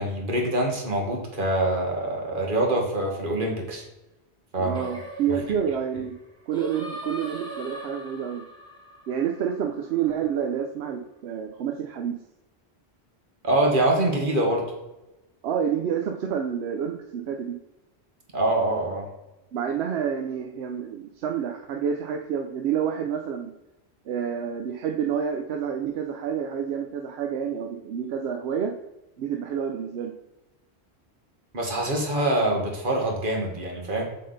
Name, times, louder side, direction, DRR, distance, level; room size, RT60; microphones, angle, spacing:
voice 1, 0.0-3.8 4.5-4.9 13.4-14.6 18.3-19.0 31.5-34.0, right 1 dB, 50° right, 0 dB, 1.5 m, -25 dB
voice 2, 4.6-6.1 6.5-8.4 9.1-12.2 15.4-17.5 19.5-23.5 24.1-28.7 29.2-30.1, right 8 dB, 75° right, 3 dB, 0.8 m, -28 dB
Singing, 4.7-10.0, right 1 dB, 5° left, 1.4 m, -40 dB
7.6 x 3.7 x 3.9 m, 0.98 s
omnidirectional pair, 1.1 m